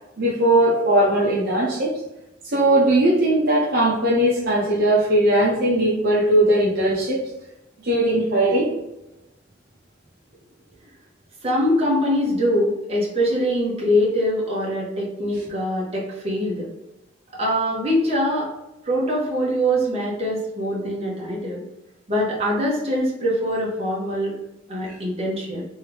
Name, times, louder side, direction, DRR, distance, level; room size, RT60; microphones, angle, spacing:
voice 1, 0.2-1.9 2.4-7.2 7.8-8.7, right 1 dB, 55° right, -6 dB, 0.9 m, -19 dB
voice 2, 11.4-16.7 17.3-18.5 18.8-21.6 22.1-24.4 24.7-25.6, equal, 35° right, -5 dB, 1.2 m, -23 dB
3.5 x 3.4 x 3.3 m, 0.92 s
head